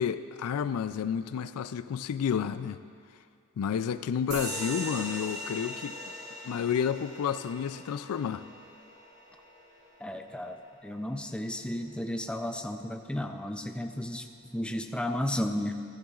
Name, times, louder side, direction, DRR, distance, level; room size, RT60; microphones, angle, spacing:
voice 1, 0.0-2.8 3.6-5.9 6.4-8.4, left 7 dB, 85° left, 14 dB, 0.4 m, -30 dB
sound 1, 4.3-11.4, equal, 50° right, 2.7 m, -41 dB
voice 2, 10.0-15.7, left 1 dB, 5° left, 5 dB, 0.4 m, -33 dB
15.0 x 13.5 x 2.4 m, 2.3 s
head